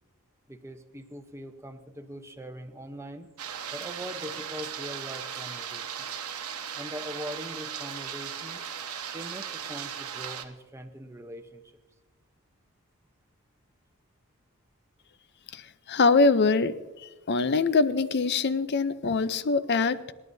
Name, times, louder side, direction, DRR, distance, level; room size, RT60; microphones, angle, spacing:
voice 1, 0.5-3.3 3.7-6.1 6.7-8.6 9.1-11.6, equal, 10° right, 6 dB, 0.8 m, -41 dB
sound 1, 3.4-10.4, right 8 dB, 80° right, 1.2 m, -37 dB
voice 2, 15.5-20.0, left 4 dB, 50° left, 14 dB, 0.6 m, -24 dB
26.5 x 11.0 x 2.7 m, 1.2 s
head